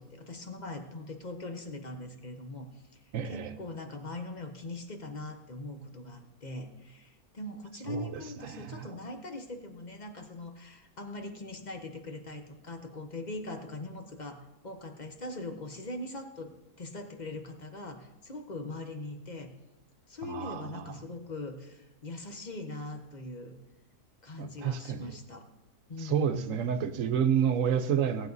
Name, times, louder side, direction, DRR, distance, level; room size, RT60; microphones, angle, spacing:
voice 1, 0.0-19.5 20.1-23.6 24.2-25.5 25.9-26.5, left 2 dB, 30° left, 5 dB, 1.0 m, -41 dB
voice 2, 3.1-3.5 7.9-8.9 20.2-21.0 24.4-25.2 26.0-28.3, right 8 dB, 65° right, 10 dB, 1.1 m, -30 dB
18.0 x 8.1 x 4.1 m, 0.98 s
omnidirectional pair, 1.6 m